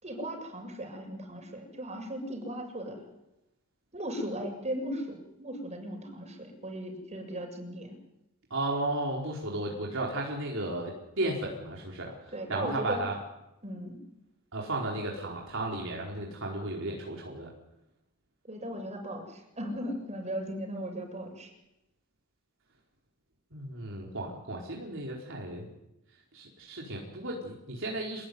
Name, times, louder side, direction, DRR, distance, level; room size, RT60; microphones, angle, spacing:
voice 1, 0.0-3.1 3.9-8.0 12.3-13.0 13.6-14.0 14.9-15.0 18.4-21.5, equal, 30° right, 3 dB, 7.4 m, -37 dB
voice 2, 8.5-13.1 14.5-17.5 23.5-25.7 26.3-28.3, right 2 dB, 65° right, -2 dB, 4.7 m, -34 dB
27.5 x 19.5 x 9.7 m, 0.90 s
head